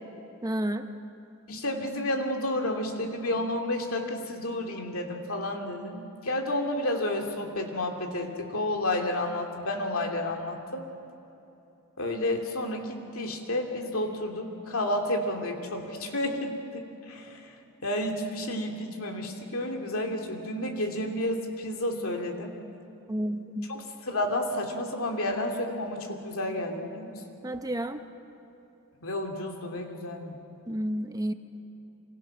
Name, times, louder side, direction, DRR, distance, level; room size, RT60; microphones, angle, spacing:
voice 1, 0.4-0.9 23.1-23.7 27.4-28.0 30.7-31.3, equal, 15° right, 7 dB, 0.9 m, -30 dB
voice 2, 1.5-10.9 12.0-17.4 17.8-22.5 23.7-27.1 29.0-30.4, left 1 dB, 70° left, 3 dB, 2.7 m, -31 dB
27.5 x 25.0 x 6.0 m, 2.9 s
head